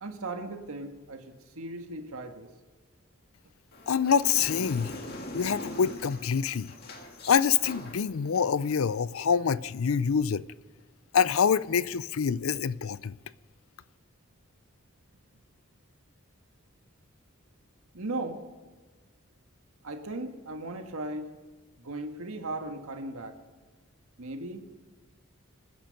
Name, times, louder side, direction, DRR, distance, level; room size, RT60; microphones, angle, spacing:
voice 1, 0.0-2.5 17.9-18.4 19.8-21.3 21.8-23.4 24.2-24.6, right 2 dB, 80° right, 1.6 m, -37 dB
sound 1, 3.7-9.0, left 1 dB, 45° left, 2.0 m, -42 dB
voice 2, 3.9-4.9 5.3-6.7 7.3-10.4 11.1-13.2, left 6 dB, 75° left, 0.5 m, -26 dB
24.5 x 10.0 x 5.3 m
head